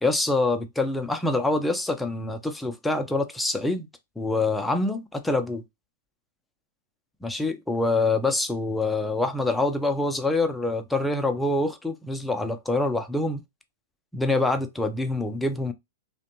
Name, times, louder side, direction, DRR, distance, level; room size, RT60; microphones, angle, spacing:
voice 1, 0.0-3.9 4.2-5.6 7.2-13.4 14.1-15.7, left 2 dB, 5° left, 0.4 m, -25 dB
2.5 x 2.1 x 2.8 m
hypercardioid pair, 115°, 0 cm